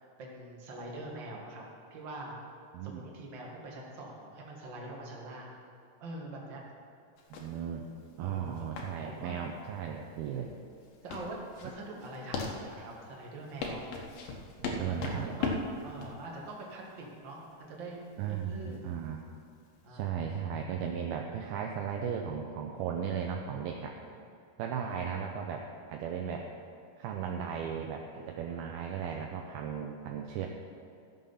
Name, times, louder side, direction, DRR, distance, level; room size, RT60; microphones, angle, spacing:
voice 1, 0.0-1.6 1.9-2.4 2.8-5.6 6.0-6.6 7.4-7.6 8.2-8.7 9.0-9.4 11.0-13.8 14.8-18.9 19.8-20.3, right 2 dB, 50° right, -2 dB, 1.4 m, -44 dB
sound 1, 7.2-19.8, left 4 dB, 65° left, 2.7 m, -39 dB
voice 2, 7.4-7.9 8.2-10.5 14.6-15.4 18.2-19.2 19.9-23.9 24.6-26.5 27.0-30.5, right 7 dB, 80° right, 2 dB, 2.3 m, -36 dB
15.0 x 7.4 x 5.7 m, 2.5 s
omnidirectional pair, 4.9 m